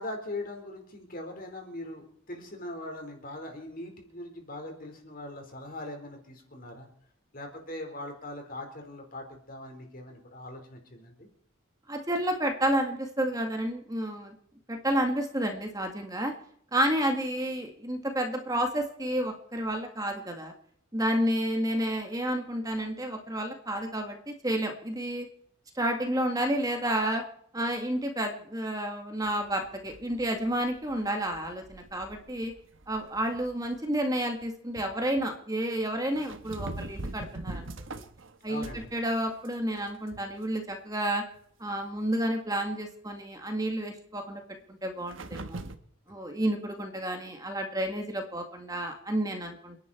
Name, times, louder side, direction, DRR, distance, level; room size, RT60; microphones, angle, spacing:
voice 1, 0.0-6.9 7.3-11.3 38.5-38.9, left 1 dB, 40° left, 3 dB, 4.5 m, -41 dB
voice 2, 11.9-14.4 14.7-16.3 16.7-20.5 20.9-25.3 25.7-27.2 27.5-32.5 32.9-37.7 38.4-41.2 41.6-44.4 44.7-45.6 46.1-49.8, right 1 dB, 15° right, 4 dB, 1.9 m, -30 dB
sound 1, 29.2-33.8 34.2-34.4 34.8-35.3 36.1-39.0 39.3-40.4 40.7-40.8 41.3-41.4 45.1-45.8, right 2 dB, 65° right, 1.3 m, -42 dB
29.5 x 10.5 x 4.5 m, 0.66 s
head